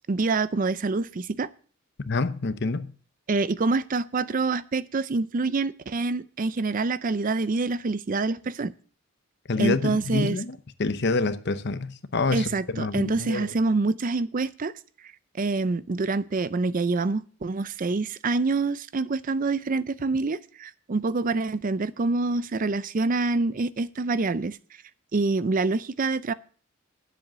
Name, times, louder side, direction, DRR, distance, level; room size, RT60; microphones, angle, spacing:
voice 1, 0.1-1.5 3.3-8.7 9.6-10.4 12.3-14.7 15.4-24.6 25.1-26.3, right 3 dB, 40° right, 0.5 m, -26 dB
voice 2, 2.1-2.9 9.5-13.5, left 3 dB, 55° left, 0.8 m, -27 dB
10.0 x 7.7 x 7.5 m
head